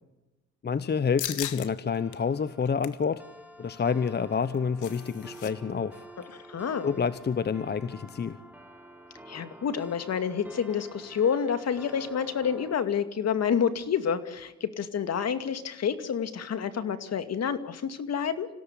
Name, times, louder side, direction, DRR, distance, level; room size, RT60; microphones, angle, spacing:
voice 1, 0.6-3.2 3.6-6.0 6.8-8.4, left 6 dB, 35° left, 15 dB, 1.0 m, -28 dB
sound 1, 1.2-1.7 2.1-2.2 2.6-3.0 4.3-5.5 5.8-5.9 6.2-6.5, left 12 dB, 80° left, 1.8 m, -37 dB
sound 2, 1.9-12.8, equal, 5° right, 3.5 m, -49 dB
voice 2, 6.2-6.9 9.3-18.5, left 7 dB, 55° left, 10 dB, 2.5 m, -29 dB
26.5 x 17.0 x 9.9 m, 0.99 s
cardioid pair, 90°, 30 cm